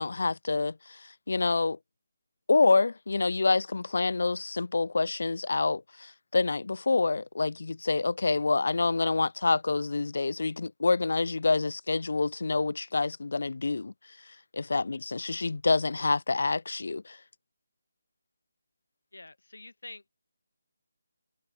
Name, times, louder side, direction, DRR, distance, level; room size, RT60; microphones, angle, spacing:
voice 1, 0.0-1.8 2.5-13.9 14.5-17.2, left 3 dB, 70° left, 2.8 m, -27 dB
voice 2, 19.1-20.1, left 2 dB, 85° left, 5.3 m, -47 dB
figure-of-eight pair, 160°, 0 cm